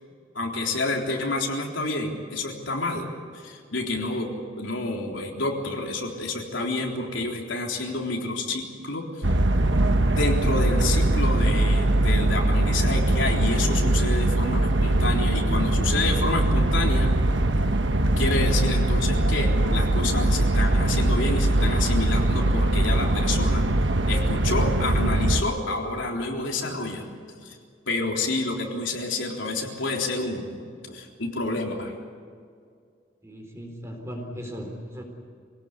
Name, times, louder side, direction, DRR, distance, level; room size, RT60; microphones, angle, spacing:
voice 1, 0.3-3.1 3.3-4.3 4.6-9.3 10.1-17.1 18.2-23.6 24.1-27.1 27.4-27.6 27.9-31.9, left 2 dB, 75° left, 0 dB, 3.8 m, -29 dB
sound 1, 9.2-25.4, right 1 dB, 70° right, 1.3 m, -22 dB
voice 2, 33.2-35.0, equal, 15° right, 2 dB, 4.0 m, -37 dB
25.5 x 18.0 x 8.5 m, 2.2 s
head